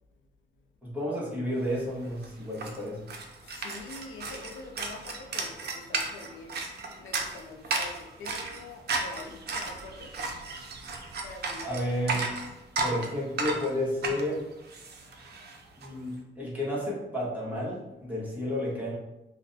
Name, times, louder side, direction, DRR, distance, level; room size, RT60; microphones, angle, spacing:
voice 1, 0.8-3.0 11.6-12.2 12.8-14.4 15.8-18.9, left 1 dB, 10° right, 1.1 m, -31 dB
sound 1, 1.7-1.8 2.0-15.9, right 3 dB, 55° right, 0.5 m, -34 dB
voice 2, 3.4-6.6 7.0-10.7 11.2-11.9 15.0-15.6, left 3 dB, 80° left, 0.5 m, -46 dB
2.6 x 2.1 x 4.0 m
cardioid pair, 95°, 20 cm